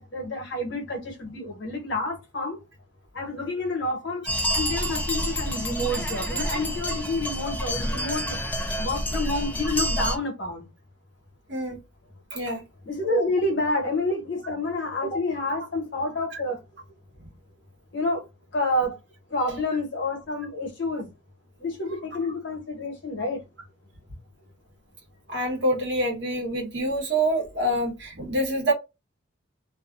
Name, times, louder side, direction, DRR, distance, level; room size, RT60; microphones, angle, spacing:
voice 1, 0.0-2.6 3.1-4.2 4.5-8.4 8.8-10.7 12.8-16.6 17.9-18.2 18.5-19.0 19.3-21.1 21.6-23.4, left 2 dB, 60° left, 1.1 m, -28 dB
sound 1, 4.3-10.2, equal, 10° left, 0.4 m, -28 dB
voice 2, 12.3-12.6 25.3-28.7, right 1 dB, 55° right, 1.1 m, -26 dB
2.7 x 2.3 x 2.4 m
head